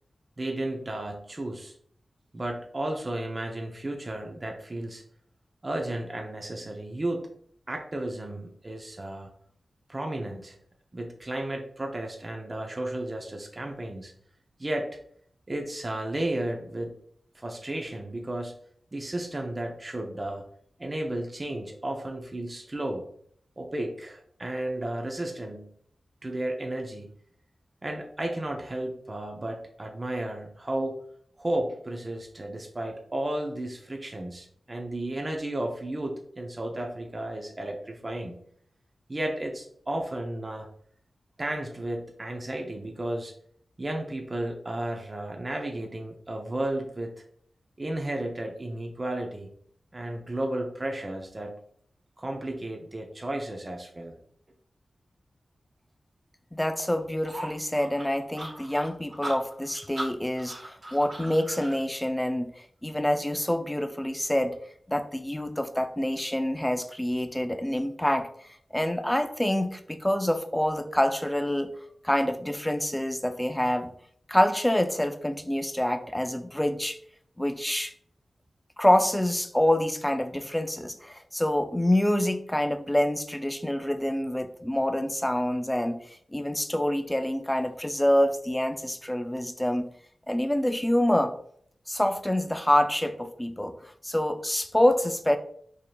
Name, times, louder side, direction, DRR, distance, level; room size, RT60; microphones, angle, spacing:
voice 1, 0.4-1.7 2.3-5.0 5.6-7.3 7.7-9.3 9.9-10.6 10.9-14.1 14.6-15.0 15.5-16.9 17.3-18.5 18.9-20.5 20.8-23.1 23.6-25.7 26.2-27.1 27.8-31.0 31.4-38.4 39.1-40.7 41.4-43.3 43.8-47.2 47.8-49.5 49.9-51.6 52.2-54.1, right 1 dB, 35° right, 2 dB, 0.6 m, -33 dB
voice 2, 56.5-62.5 62.8-64.5 64.9-68.3 68.7-71.7 72.0-73.9 74.3-77.0 77.4-77.9 78.8-89.9 90.3-91.3 91.9-93.7 94.0-95.4, left 1 dB, 10° left, 8 dB, 0.4 m, -26 dB
sound 1, 57.3-61.8, right 1 dB, 55° right, 1.3 m, -38 dB
4.8 x 2.8 x 2.3 m, 0.63 s
cardioid pair, 60°, 0 cm